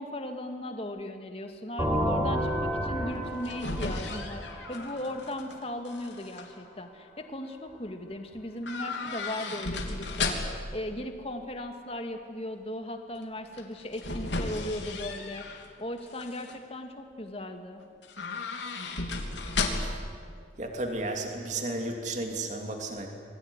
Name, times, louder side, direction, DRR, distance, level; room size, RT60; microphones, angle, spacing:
voice 1, 0.0-4.4 4.7-17.8, left 1 dB, 30° left, 5 dB, 2.1 m, -37 dB
sound 1, 1.8-5.5, equal, 15° right, 5.1 m, -31 dB
sound 2, 3.2-5.5 5.9-6.4 8.6-10.7 13.5-15.7 16.1-16.6 18.0-20.1 20.4-20.5, left 3 dB, 75° left, 3.3 m, -34 dB
voice 2, 20.6-23.1, right 2 dB, 40° right, 3 dB, 3.0 m, -33 dB
27.5 x 21.5 x 9.8 m, 2.1 s
head